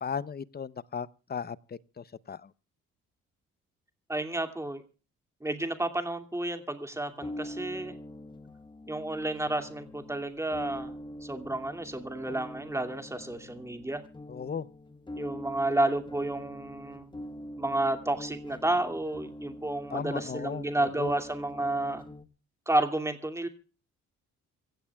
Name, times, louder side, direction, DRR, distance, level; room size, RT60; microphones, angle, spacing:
voice 1, 0.0-2.5 14.3-14.7 19.9-21.1, left 6 dB, 30° left, 0.8 m, -36 dB
voice 2, 4.1-4.8 5.4-8.0 8.9-10.9 11.2-14.0 15.2-17.1 17.6-22.0 22.7-23.5, right 1 dB, 10° right, 2.5 m, -31 dB
sound 1, 6.9-22.2, left 1 dB, 15° left, 1.3 m, -44 dB
26.0 x 16.0 x 2.4 m
cardioid pair, 90°, 30 cm